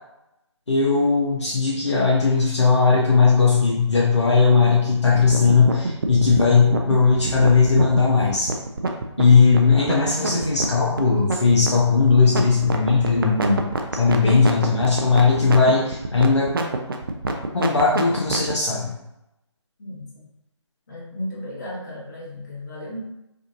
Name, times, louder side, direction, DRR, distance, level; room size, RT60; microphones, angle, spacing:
voice 1, 0.7-8.5 9.2-16.5 17.5-19.0, left 4 dB, 65° left, -5 dB, 0.9 m, -18 dB
sound 1, 5.1-18.5, right 3 dB, 45° right, 0.5 m, -26 dB
voice 2, 19.8-20.3 20.9-23.0, left 1 dB, 35° left, -6 dB, 1.4 m, -35 dB
5.1 x 2.5 x 2.6 m, 0.89 s
figure-of-eight pair, 150°, 16 cm